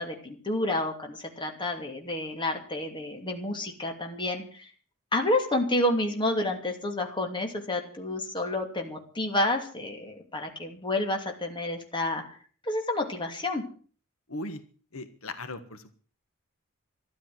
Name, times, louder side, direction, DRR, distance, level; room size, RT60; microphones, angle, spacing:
voice 1, 0.0-4.7 5.1-12.2 12.6-13.6, left 1 dB, 25° left, 3 dB, 2.7 m, -29 dB
voice 2, 14.3-14.6 14.9-16.0, left 2 dB, 85° left, 10 dB, 1.5 m, -38 dB
13.0 x 11.5 x 7.8 m, 0.43 s
head